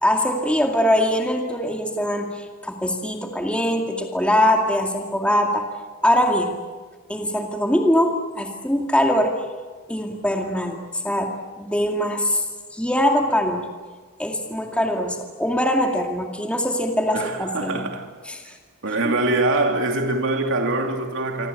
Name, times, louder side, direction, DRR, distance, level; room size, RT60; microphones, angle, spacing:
voice 1, 0.0-5.6 6.0-6.6 7.1-9.4 9.9-10.8 11.0-11.3 11.6-12.4 12.7-13.7 14.2-17.8 18.3-18.5 19.0-19.2, equal, 5° left, 2.2 m, -22 dB
voice 2, 17.1-18.1 18.8-21.5, right 2 dB, 65° right, 2.9 m, -23 dB
27.0 x 25.5 x 8.5 m
head